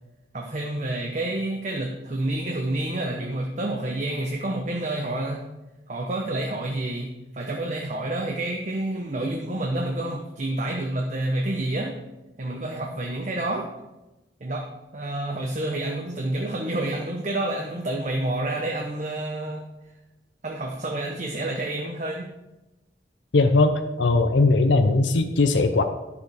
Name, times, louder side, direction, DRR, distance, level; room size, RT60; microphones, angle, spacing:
voice 1, 0.3-5.4 5.9-11.9 12.4-13.7 14.4-14.7 14.9-19.6 20.4-22.3, right 1 dB, 40° right, 1 dB, 0.9 m, -29 dB
voice 2, 23.3-25.8, left 3 dB, 85° left, 7 dB, 0.6 m, -19 dB
10.5 x 6.9 x 4.9 m, 1.0 s
head